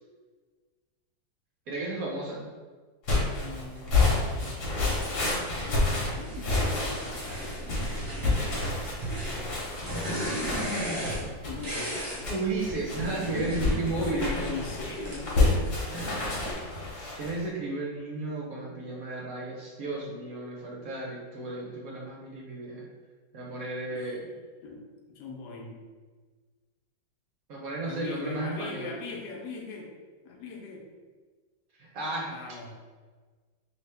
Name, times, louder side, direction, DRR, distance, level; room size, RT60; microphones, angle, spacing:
voice 1, 1.7-2.6 12.3-14.6 17.1-22.9 23.3-24.3 27.5-28.9 31.8-32.3, right 2 dB, 65° right, -3 dB, 0.9 m, -33 dB
sound 1, 3.0-17.4, left 3 dB, 50° left, 1.1 m, -29 dB
voice 2, 3.3-4.6 5.6-7.1 7.6-7.8 8.5-8.7 9.3-9.5 11.4-12.4 13.7-15.8 23.9-24.1 24.6-24.8 25.1-25.8 27.8-29.9 30.2-30.8 32.3-32.8, left 3 dB, 75° left, -1 dB, 1.2 m, -40 dB
sound 2, 3.9-4.1 4.8-5.6 6.2-12.2 12.6-16.5, right 1 dB, 40° right, 0.9 m, -36 dB
3.2 x 2.7 x 3.3 m, 1.4 s
omnidirectional pair, 2.0 m